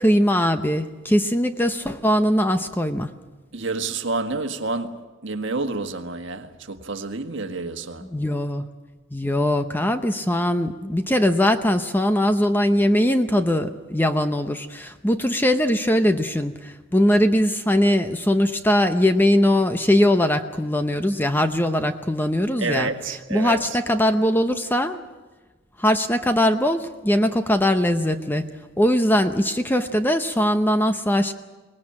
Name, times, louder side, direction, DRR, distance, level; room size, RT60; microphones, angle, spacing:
voice 1, 0.0-3.1 8.0-8.7 9.1-22.9 23.3-25.0 25.8-28.5 28.8-31.3, left 1 dB, 10° left, 9 dB, 0.8 m, -21 dB
voice 2, 3.5-5.0 5.2-8.0 22.6-23.6, right 3 dB, 60° right, 6 dB, 1.6 m, -28 dB
23.5 x 19.0 x 8.7 m, 1.3 s
head